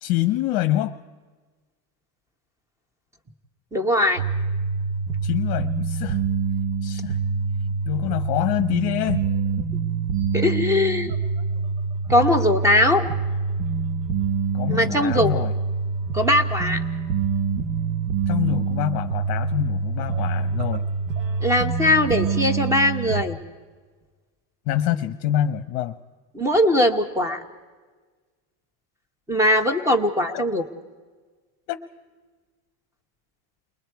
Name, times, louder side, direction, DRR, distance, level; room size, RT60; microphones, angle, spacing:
voice 1, 0.0-0.9 5.2-6.2 6.8-7.2 7.6-9.3 14.5-15.5 18.3-20.8 24.7-26.0 30.3-30.4 31.7-31.8, left 13 dB, 50° left, 8 dB, 0.8 m, -26 dB
voice 2, 3.7-4.2 10.3-11.1 12.1-13.0 14.7-15.5 16.1-16.8 21.4-23.4 26.3-27.4 29.3-30.7, left 1 dB, 5° right, 8 dB, 1.0 m, -20 dB
sound 1, 4.2-23.2, right 5 dB, 85° right, 1.4 m, -26 dB
29.5 x 22.0 x 4.7 m, 1.4 s
cardioid pair, 175°, 48 cm